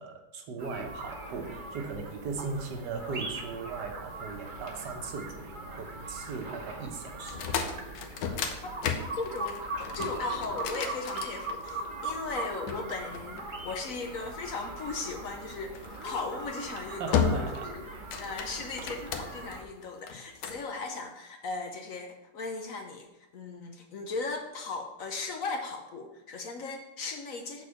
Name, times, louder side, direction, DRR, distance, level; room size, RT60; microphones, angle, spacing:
voice 1, 0.0-7.8 17.0-17.7 18.4-18.6, right 4 dB, 75° right, 4 dB, 1.5 m, -38 dB
sound 1, 0.6-19.6, right 2 dB, 35° right, 0.9 m, -40 dB
sound 2, 7.2-11.9 12.7-14.0 15.7-16.0 16.5-16.8 17.1-17.7 18.0-19.5 20.1-20.6, left 7 dB, 75° left, 1.4 m, -33 dB
voice 2, 9.1-17.8 18.2-27.6, left 3 dB, 60° left, 4 dB, 1.0 m, -37 dB
6.9 x 4.2 x 6.4 m, 0.93 s
omnidirectional pair, 1.9 m